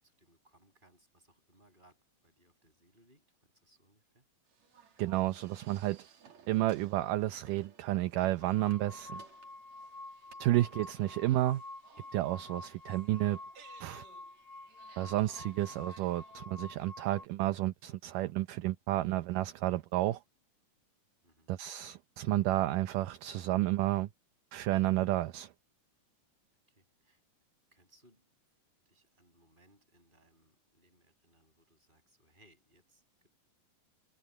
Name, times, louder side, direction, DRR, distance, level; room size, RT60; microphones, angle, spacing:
voice 1, 0.0-4.3 21.2-21.5 26.7-27.2 27.7-28.3 28.8-33.3, right 1 dB, 10° right, 7.9 m, -67 dB
sound 1, 4.5-16.5, right 6 dB, 55° right, 3.7 m, -61 dB
voice 2, 5.0-6.0 6.5-9.2 10.4-11.6 12.1-13.4 13.8-14.0 15.0-20.2 21.5-24.1 24.5-25.5, right 15 dB, 75° right, 2.2 m, -31 dB
sound 2, 8.4-17.3, left 2 dB, 40° left, 2.1 m, -49 dB
omnidirectional pair, 4.1 m